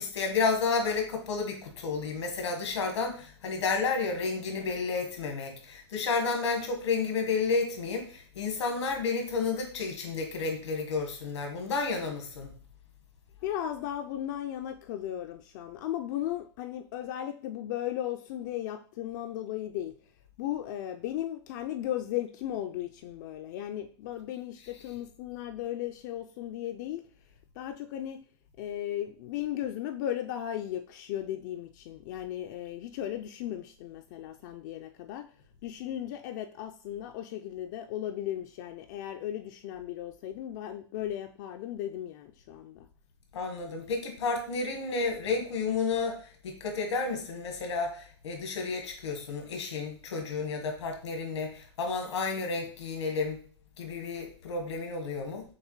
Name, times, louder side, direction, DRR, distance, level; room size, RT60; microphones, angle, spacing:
voice 1, 0.0-12.5 24.6-24.8 43.3-46.2 46.4-53.4 53.8-55.4, left 4 dB, 90° left, 3 dB, 1.4 m, -31 dB
voice 2, 13.4-19.9 20.4-27.0 27.6-28.2 28.6-35.3 35.6-42.9, left 12 dB, 40° left, 6 dB, 0.4 m, -36 dB
6.4 x 2.2 x 3.1 m, 0.42 s
supercardioid pair, 150°, 14 cm